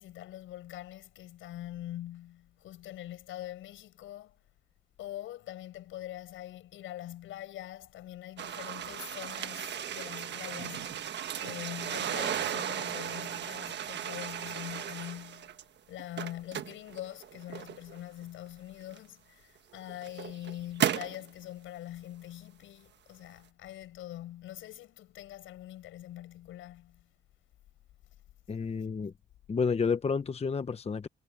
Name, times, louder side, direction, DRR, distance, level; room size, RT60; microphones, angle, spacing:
voice 1, 0.0-4.4 5.0-27.1, left 13 dB, 85° left, 6.9 m, -44 dB
sound 1, 8.4-15.6 16.0-18.0 18.9-19.0 19.7-21.2, right 10 dB, 65° right, 1.4 m, -35 dB
voice 2, 28.5-29.1 29.5-31.1, left 5 dB, 30° left, 1.1 m, -30 dB
cardioid pair, 90°, 20 cm